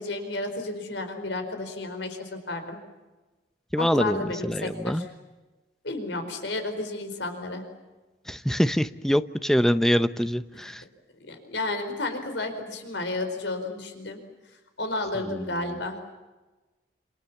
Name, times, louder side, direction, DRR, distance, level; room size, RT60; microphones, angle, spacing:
voice 1, 0.0-2.8 3.8-5.1 5.8-7.6 11.3-14.2 14.8-16.0, left 2 dB, 75° left, 7 dB, 4.6 m, -32 dB
voice 2, 3.7-5.0 8.3-10.8 15.3-15.4, equal, ahead, 11 dB, 0.8 m, -24 dB
28.0 x 28.0 x 7.3 m, 1.2 s
head